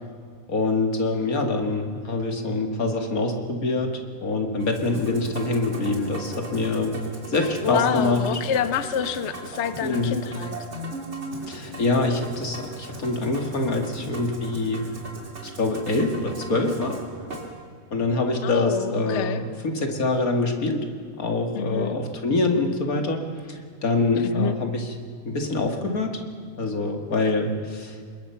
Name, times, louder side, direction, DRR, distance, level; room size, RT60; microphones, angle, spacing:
voice 1, 0.5-7.0 7.3-8.2 9.8-10.2 11.5-14.9 15.4-17.0 17.9-20.8 21.2-23.2 23.5-24.9 25.3-26.2 26.6-28.1, left 2 dB, 80° left, 4 dB, 2.7 m, -25 dB
Musical instrument, 4.6-17.5, right 1 dB, 50° right, 3.2 m, -38 dB
voice 2, 7.6-10.6 18.4-19.4 21.5-22.0 24.2-24.6, left 8 dB, 55° left, 11 dB, 1.1 m, -27 dB
26.0 x 21.5 x 5.8 m, 2.1 s
omnidirectional pair, 1.5 m